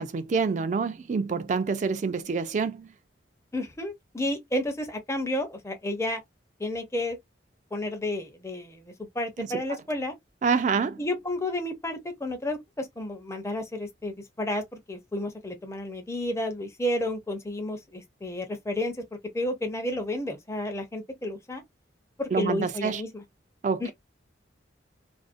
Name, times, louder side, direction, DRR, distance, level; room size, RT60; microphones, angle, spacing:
voice 1, 0.0-2.9 9.4-9.5 10.4-11.0 22.3-23.0 23.6-23.9, right 5 dB, 40° right, 0.3 m, -27 dB
voice 2, 3.5-6.2 6.6-7.2 7.7-10.1 11.0-21.6 22.2-23.2 23.8-23.9, left 1 dB, 15° left, 0.5 m, -31 dB
2.5 x 2.0 x 2.4 m
head